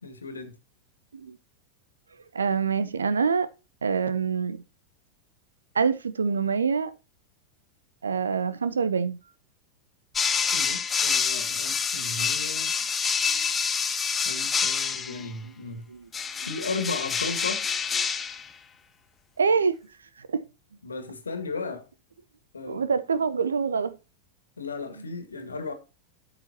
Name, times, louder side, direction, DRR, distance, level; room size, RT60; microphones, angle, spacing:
voice 1, 0.0-0.5 10.5-12.7 14.2-15.9 16.4-17.7 20.8-21.9 22.5-22.9 24.6-25.7, left 3 dB, 75° left, 1.9 m, -35 dB
voice 2, 2.3-3.5 3.8-4.6 5.7-6.9 8.0-9.2 12.0-12.1 13.3-13.5 15.2-15.3 15.9-16.1 19.4-19.7 20.2-20.4 22.6-23.9 25.4-25.5, right 5 dB, 70° right, 0.9 m, -25 dB
sound 1, 10.2-15.3 16.1-18.5, left 6 dB, 20° left, 1.0 m, -27 dB
12.5 x 6.9 x 2.8 m
figure-of-eight pair, 90°, 0 cm